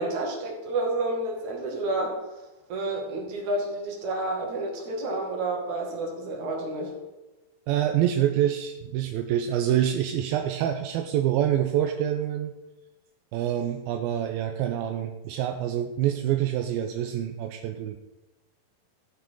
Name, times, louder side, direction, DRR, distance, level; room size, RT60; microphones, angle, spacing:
voice 1, 0.0-2.2 2.7-6.9, right 2 dB, 55° right, 0 dB, 3.4 m, -30 dB
voice 2, 7.7-12.5 13.3-18.0, right 11 dB, 85° right, 5 dB, 2.5 m, -26 dB
14.0 x 9.3 x 4.7 m, 1.1 s
omnidirectional pair, 4.3 m